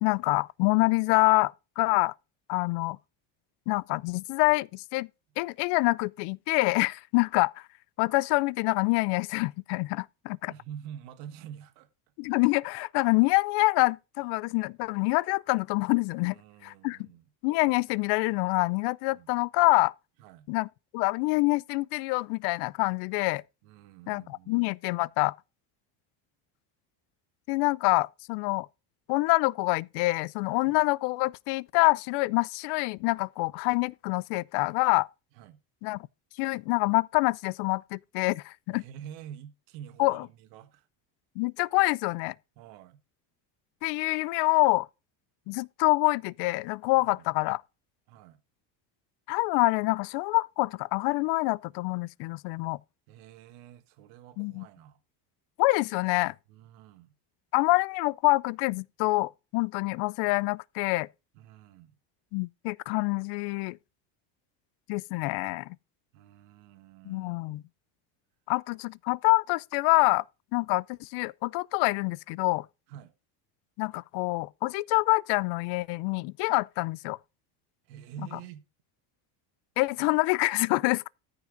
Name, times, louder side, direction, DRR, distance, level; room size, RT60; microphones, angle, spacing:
voice 1, 0.0-2.1 2.5-3.0 3.7-5.1 5.4-7.5 8.0-10.5 12.2-17.1 17.4-19.9 20.5-20.7 20.9-23.4 24.1-25.3 27.5-28.7 29.1-35.1 35.8-36.0 36.4-38.8 40.0-40.2 41.4-42.3 43.8-44.9 45.5-47.6 49.3-52.8 54.4-54.6 55.6-56.3 57.5-61.1 62.3-63.8 64.9-65.7 67.1-67.6 68.5-70.2 70.5-72.7 73.8-77.2 79.8-81.1, left 24 dB, 60° left, 0.5 m, -26 dB
voice 2, 10.5-11.9 16.3-17.3 19.1-19.3 20.2-20.5 23.6-24.6 30.6-30.8 35.3-35.6 38.7-40.9 42.6-43.0 47.0-47.3 48.1-48.4 53.1-55.0 56.5-57.1 61.3-62.0 66.1-67.6 72.9-73.1 77.8-78.7, right 10 dB, 90° right, 1.6 m, -47 dB
14.0 x 5.8 x 3.8 m
cardioid pair, 160°, 47 cm